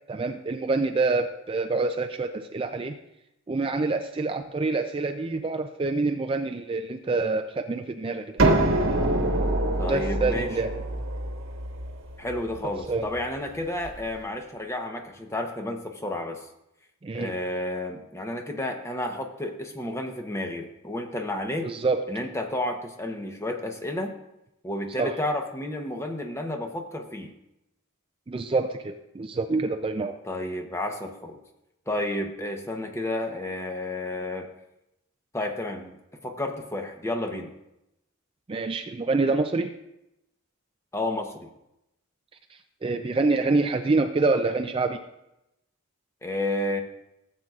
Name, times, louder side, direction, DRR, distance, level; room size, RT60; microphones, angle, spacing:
voice 1, 0.1-3.0 3.5-8.3 9.9-10.7 12.9-13.1 17.0-17.3 21.6-22.0 25.0-25.2 28.3-30.2 38.5-39.7 42.8-45.0, right 3 dB, 25° right, 5 dB, 0.4 m, -26 dB
sound 1, 8.4-14.0, right 1 dB, 70° right, 1.2 m, -26 dB
voice 2, 9.8-10.5 12.2-16.4 17.1-21.7 22.1-24.2 24.6-27.3 30.2-31.4 31.9-34.5 35.3-36.0 36.2-37.5 40.9-41.5 46.2-46.8, left 1 dB, 15° left, 4 dB, 0.8 m, -31 dB
15.5 x 7.9 x 2.4 m, 0.87 s
head